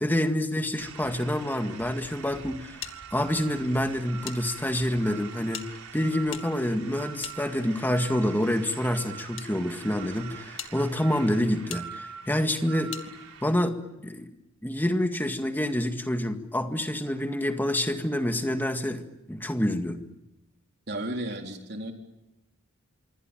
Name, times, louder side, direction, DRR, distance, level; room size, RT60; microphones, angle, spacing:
voice 1, 0.0-2.8 3.1-5.6 5.9-12.9 13.4-14.4 14.6-20.0, left 1 dB, 10° left, 6 dB, 1.9 m, -27 dB
sound 1, 0.8-13.5, right 7 dB, 90° right, 3.8 m, -44 dB
sound 2, 2.8-4.4 4.7-4.8 5.5-8.0 8.8-9.5 10.1-10.2 10.6-10.7 11.7-11.8 12.9-13.1, left 11 dB, 65° left, 2.1 m, -42 dB
voice 2, 20.9-21.9, right 1 dB, 50° right, 3 dB, 4.0 m, -33 dB
26.5 x 24.0 x 9.1 m, 0.93 s
head